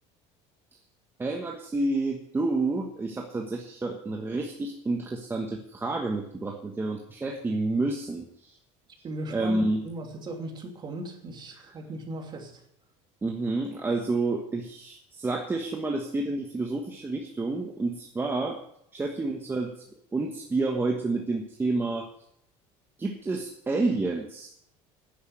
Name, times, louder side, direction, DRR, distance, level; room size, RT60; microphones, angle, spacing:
voice 1, 1.2-8.6 9.3-9.8 13.2-18.6 18.9-19.7 20.1-22.1 23.0-24.5, right 2 dB, 15° right, 1 dB, 1.3 m, -29 dB
voice 2, 9.0-12.6, right 2 dB, 30° right, 2 dB, 2.9 m, -38 dB
10.0 x 9.7 x 7.8 m, 0.73 s
cardioid pair, 130°, 15 cm